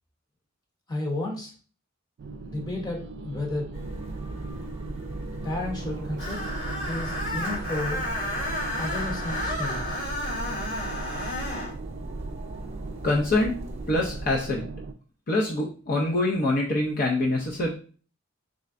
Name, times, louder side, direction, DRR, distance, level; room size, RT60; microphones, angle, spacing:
voice 1, 0.9-1.5 2.5-3.7 5.4-6.4 6.8-8.1 8.8-9.9, left 2 dB, 20° left, -1 dB, 1.0 m, -32 dB
sound 1, 2.2-14.9, right 4 dB, 60° right, 0.3 m, -39 dB
sound 2, 3.7-14.4, right 1 dB, 30° right, 0.8 m, -38 dB
Screech, 6.2-11.7, left 1 dB, 60° left, 2.0 m, -32 dB
voice 2, 13.0-13.6 13.9-14.7 15.3-17.7, left 2 dB, 45° left, -3 dB, 0.6 m, -25 dB
3.7 x 3.2 x 2.5 m, 0.40 s
head